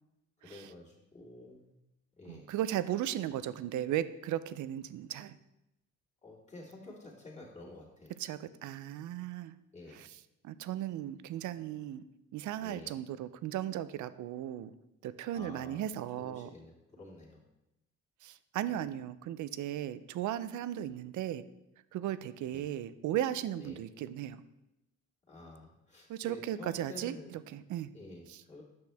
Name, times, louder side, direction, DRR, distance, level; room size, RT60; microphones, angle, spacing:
voice 1, 0.4-1.7 2.2-2.5 3.3-3.4 6.2-8.1 9.7-10.1 12.6-13.0 15.3-15.8 16.2-17.4 18.7-18.8 20.8-20.9 22.5-22.7 23.6-23.8 25.3-27.4 27.9-28.6, left 2 dB, 25° left, -5 dB, 2.5 m, -50 dB
voice 2, 2.3-5.4 8.2-9.6 9.9-10.2 10.4-12.0 12.3-14.7 15.0-16.5 18.2-21.4 21.9-24.4 26.1-27.9 28.3-28.4, right 11 dB, 75° right, 14 dB, 0.5 m, -36 dB
8.5 x 6.1 x 3.4 m, 0.91 s
cardioid pair, 90°, 30 cm